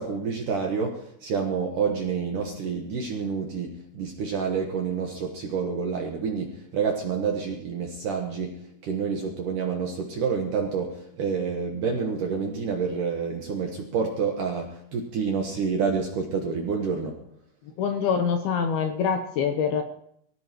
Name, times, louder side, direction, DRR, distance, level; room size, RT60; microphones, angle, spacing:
voice 1, 0.0-17.2, right 5 dB, 65° right, 1 dB, 2.2 m, -28 dB
voice 2, 17.8-19.8, left 6 dB, 70° left, 5 dB, 2.5 m, -25 dB
23.5 x 16.0 x 3.1 m, 0.69 s
omnidirectional pair, 5.4 m